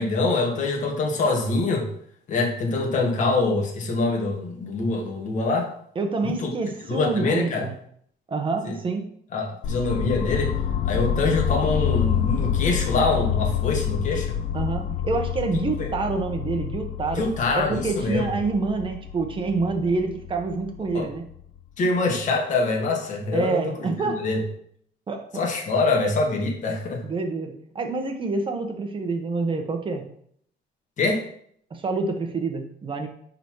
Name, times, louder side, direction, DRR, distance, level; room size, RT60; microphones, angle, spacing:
voice 1, 0.0-1.9 2.3-5.7 6.2-6.5 6.9-7.6 8.6-8.7 9.3-10.6 10.8-14.4 15.8-15.9 17.1-18.3 20.9-21.1 21.8-23.7 24.0-24.4 25.3-27.0 31.0-31.2, left 3 dB, 40° left, 0 dB, 1.7 m, -24 dB
voice 2, 5.9-7.7 8.3-9.1 14.5-17.3 17.5-21.2 23.3-24.2 25.1-25.4 27.0-30.0 31.7-33.1, right 3 dB, 30° right, 5 dB, 1.2 m, -27 dB
sound 1, 9.6-21.6, left 9 dB, 85° left, 1.2 m, -28 dB
10.5 x 4.0 x 4.7 m, 0.65 s
cardioid pair, 155°, 19 cm